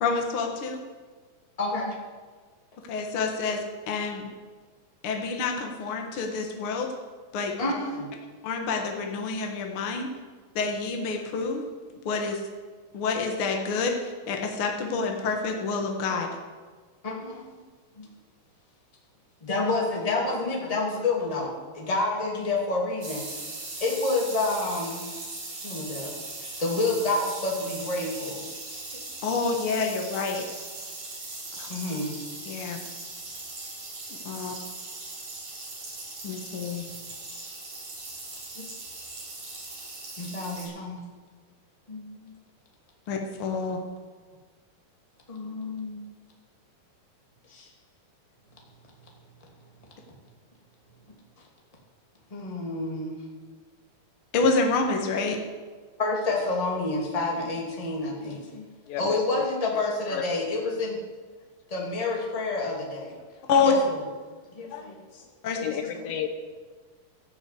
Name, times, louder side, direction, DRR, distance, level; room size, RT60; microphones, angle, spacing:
voice 1, 0.0-0.8 2.9-4.3 5.0-6.9 7.3-7.7 8.4-10.1 10.6-11.6 12.1-12.4 12.9-16.3 29.2-30.4 31.6-31.7 32.5-32.8 34.2-34.5 36.2-36.8 43.1-43.8 54.3-55.4 63.5-63.7 65.4-65.6, left 4 dB, 50° left, 2 dB, 1.7 m, -27 dB
voice 2, 1.6-2.0 5.5-5.6 7.6-8.1 17.0-17.6 18.0-18.1 19.4-23.5 23.8-25.2 25.6-26.1 26.6-28.5 28.9-29.0 31.7-32.2 38.6-38.7 40.2-41.0 41.9-42.3 45.3-46.0 47.5-47.7 52.3-53.2 56.0-58.7 59.0-61.0 61.7-63.2 63.7-63.8 64.5-65.2 65.6-66.0, left 2 dB, 15° left, -2 dB, 1.8 m, -29 dB
sound 1, 23.0-40.7, right 2 dB, 50° right, 4.8 m, -39 dB
voice 3, 65.6-66.3, left 10 dB, 80° left, 6 dB, 2.9 m, -32 dB
14.0 x 7.3 x 8.4 m, 1.4 s
omnidirectional pair, 4.1 m